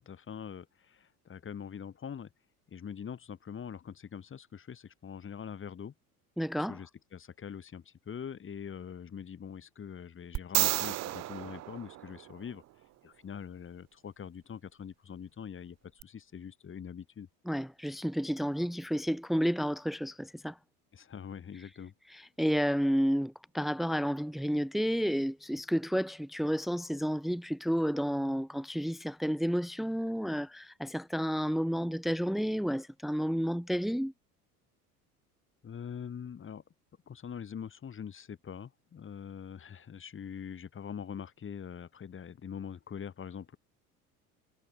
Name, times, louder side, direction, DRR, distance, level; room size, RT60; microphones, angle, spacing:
voice 1, 0.0-2.3 2.7-5.9 6.7-12.6 13.0-17.3 20.9-21.9 35.6-36.6 37.1-43.6, left 7 dB, 25° left, 2.9 m, -43 dB
voice 2, 6.4-6.8 17.5-20.6 22.1-34.1, equal, ahead, 1.8 m, -31 dB
sound 1, 10.4-12.6 16.0-16.1, right 15 dB, 35° right, 0.9 m, -32 dB
figure-of-eight pair, 70°, 45 cm